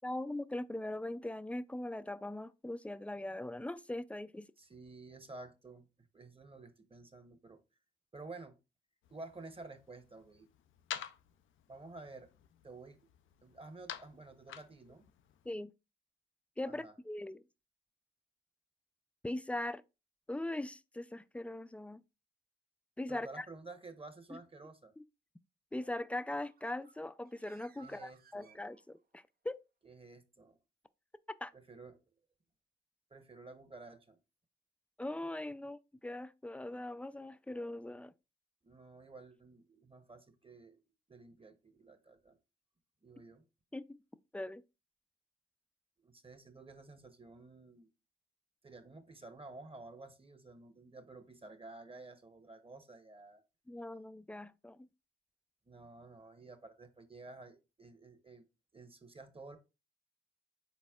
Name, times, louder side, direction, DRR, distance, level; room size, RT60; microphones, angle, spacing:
voice 1, 0.0-4.5 15.5-15.7 16.6-17.4 19.2-19.8 20.3-22.0 23.0-23.5 24.3-24.4 25.0-25.1 25.7-29.6 31.4-31.5 35.0-38.1 43.7-44.0 44.3-44.6 53.7-54.9, left 1 dB, 5° left, 0.3 m, -40 dB
voice 2, 4.6-5.9 6.1-7.6 8.1-8.5 9.1-10.5 11.7-12.3 12.6-13.0 13.4-15.1 16.6-16.9 23.1-24.9 27.8-28.6 29.8-30.6 31.5-32.0 33.1-34.2 38.6-40.8 41.1-42.4 43.0-43.4 46.0-47.9 48.6-53.4 55.7-58.5 58.7-59.6, right 3 dB, 30° right, 1.0 m, -52 dB
sound 1, 9.0-15.5, left 10 dB, 85° left, 0.4 m, -50 dB
Bird, 26.2-29.2, right 6 dB, 50° right, 0.5 m, -63 dB
4.1 x 4.1 x 2.3 m
supercardioid pair, 45°, 20 cm